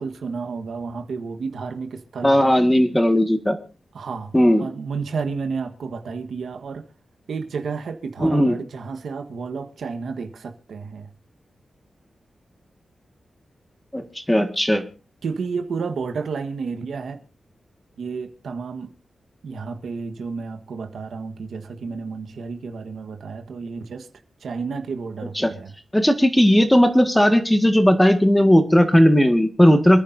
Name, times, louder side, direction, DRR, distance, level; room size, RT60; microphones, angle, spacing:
voice 1, 0.0-2.5 3.9-6.8 7.3-11.1 15.2-17.2 18.0-18.9 19.4-24.1 24.4-25.7, right 5 dB, 85° right, 1.4 m, -31 dB
voice 2, 2.2-3.6 4.3-4.7 8.2-8.6 13.9-14.8 25.4-25.5 25.9-30.0, equal, 10° left, 1.8 m, -16 dB
27.0 x 10.0 x 2.7 m
wide cardioid pair, 85°, 0 cm